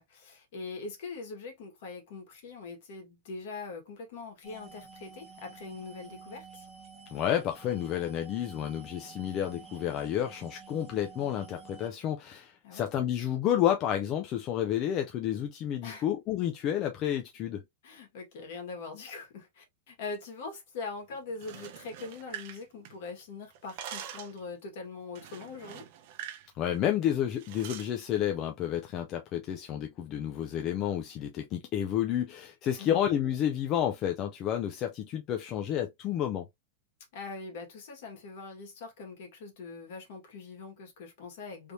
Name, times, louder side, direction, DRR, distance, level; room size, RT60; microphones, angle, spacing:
voice 1, 0.0-6.7 12.6-12.9 15.8-16.1 17.8-25.9 32.8-33.1 37.1-41.7, left 4 dB, 55° left, 1.6 m, -42 dB
sound 1, 4.4-11.9, right 5 dB, 10° right, 0.9 m, -51 dB
voice 2, 7.1-17.6 26.6-36.5, left 10 dB, 25° left, 0.3 m, -30 dB
sound 2, 21.3-23.2 23.5-24.4 25.2-26.5 26.7-26.9 27.4-27.9, right 10 dB, 45° right, 0.6 m, -44 dB
3.3 x 2.7 x 3.0 m
supercardioid pair, 175°, 0 cm